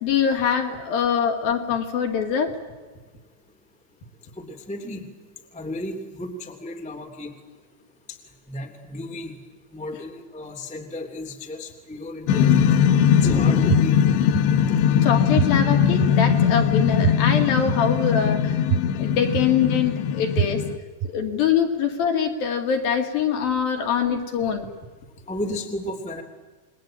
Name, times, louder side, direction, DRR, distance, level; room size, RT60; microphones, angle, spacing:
voice 1, 0.0-2.5 15.0-18.6 19.0-20.6 21.1-24.7, left 7 dB, 60° left, 4 dB, 3.7 m, -23 dB
voice 2, 4.4-5.0 5.5-7.3 8.1-8.2 8.5-9.3 9.7-12.7 13.1-14.0 25.3-26.2, left 1 dB, ahead, 3 dB, 1.8 m, -33 dB
sound 1, 12.3-20.8, left 8 dB, 80° left, 3.2 m, -20 dB
sound 2, 13.7-13.8 14.3-14.4 15.4-15.5 16.0-16.1 17.0-17.1 17.7-17.8 18.7-18.8 19.3-19.4 20.4-20.5 21.0-21.1, right 10 dB, 65° right, 3.2 m, -21 dB
29.0 x 21.5 x 8.9 m, 1.3 s
omnidirectional pair, 5.2 m